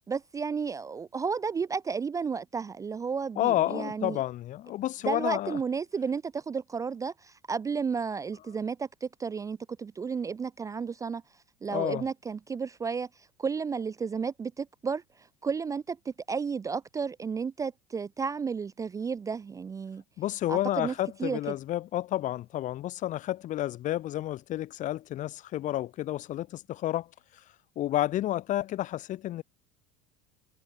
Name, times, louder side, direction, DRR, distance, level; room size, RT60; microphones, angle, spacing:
voice 1, 0.0-4.2 5.1-11.2 11.6-13.1 13.4-15.0 15.4-20.0 20.5-20.9 21.2-21.5, right 5 dB, 20° right, 0.4 m, -32 dB
voice 2, 3.4-5.6 11.7-12.0 20.2-27.1 27.8-29.4, left 14 dB, 45° left, 1.1 m, -30 dB
supercardioid pair, 100°, 18 cm